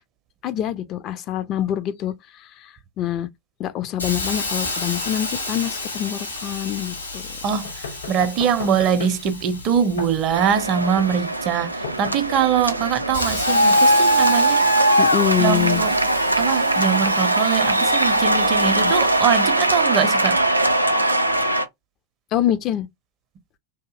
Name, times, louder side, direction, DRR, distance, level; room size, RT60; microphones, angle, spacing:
voice 1, 0.4-3.3 3.6-7.2 15.0-15.8 18.7-18.9 22.3-22.9, left 11 dB, 35° left, 0.3 m, -25 dB
Hiss, 4.0-11.6 12.1-19.8, left 3 dB, 80° left, 1.2 m, -32 dB
sound 1, 7.6-12.6, left 4 dB, 65° left, 0.7 m, -37 dB
voice 2, 8.1-14.7 15.4-16.0 16.4-20.4, right 8 dB, 35° right, 0.5 m, -22 dB
sound 2, 10.3-21.6, right 1 dB, 85° right, 0.4 m, -20 dB
2.7 x 2.6 x 2.3 m
figure-of-eight pair, 90°, 0 cm